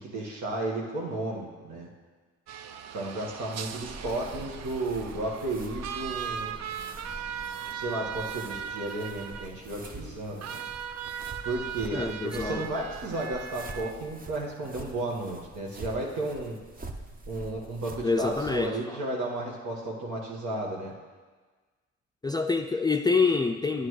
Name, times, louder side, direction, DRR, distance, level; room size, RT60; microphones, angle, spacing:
voice 1, 0.0-1.9 2.9-6.6 7.7-10.6 11.4-16.6 17.3-20.9, right 2 dB, 75° right, -3 dB, 1.5 m, -33 dB
sound 1, 2.5-13.9, right 8 dB, 60° right, 0.5 m, -39 dB
sound 2, 3.6-18.7, right 2 dB, 30° right, 0.8 m, -45 dB
voice 2, 11.9-12.7 18.0-19.0 22.2-23.9, left 4 dB, 15° left, 4 dB, 0.3 m, -26 dB
9.6 x 9.0 x 3.2 m, 1.4 s
cardioid pair, 90°, 30 cm